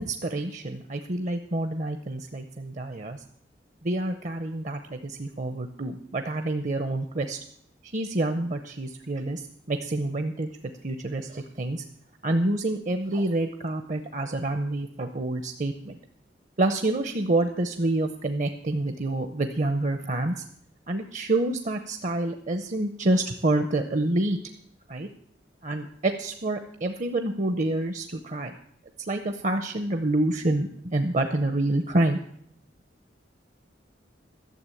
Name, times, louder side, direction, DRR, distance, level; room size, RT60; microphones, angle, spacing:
voice 1, 0.0-3.2 3.8-7.4 7.9-10.5 10.8-11.8 12.2-16.0 16.6-20.4 20.9-24.4 24.9-25.1 25.6-28.5 29.0-32.2, right 2 dB, 40° right, 7 dB, 0.7 m, -27 dB
12.0 x 6.9 x 8.4 m, 0.68 s
head